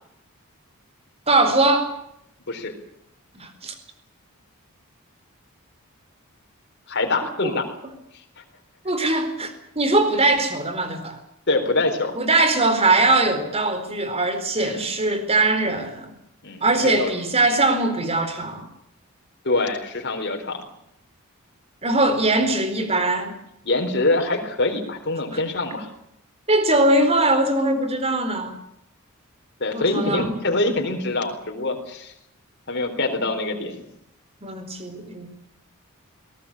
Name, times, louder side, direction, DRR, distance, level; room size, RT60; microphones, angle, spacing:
voice 1, 1.3-1.9 3.3-3.7 7.4-7.6 8.8-11.2 12.2-16.1 16.6-18.7 21.8-23.4 25.3-25.4 26.5-28.5 29.7-30.3 34.4-35.3, right 2 dB, 30° right, 9 dB, 4.3 m, -21 dB
voice 2, 6.9-7.6 11.5-12.1 14.5-14.8 16.4-17.1 19.4-20.6 23.6-25.9 29.6-32.1 32.7-33.8, left 2 dB, 50° left, 4 dB, 4.2 m, -24 dB
22.5 x 18.5 x 8.6 m, 0.77 s
head